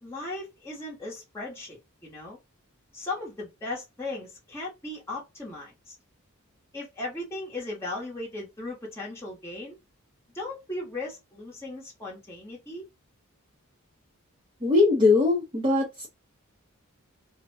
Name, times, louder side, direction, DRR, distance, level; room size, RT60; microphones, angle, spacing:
voice 1, 0.0-2.4 2.9-5.9 6.7-9.8 10.3-12.8, left 2 dB, 10° left, 0.9 m, -37 dB
voice 2, 14.6-16.1, left 3 dB, 20° right, 0.6 m, -21 dB
2.6 x 2.1 x 2.6 m
head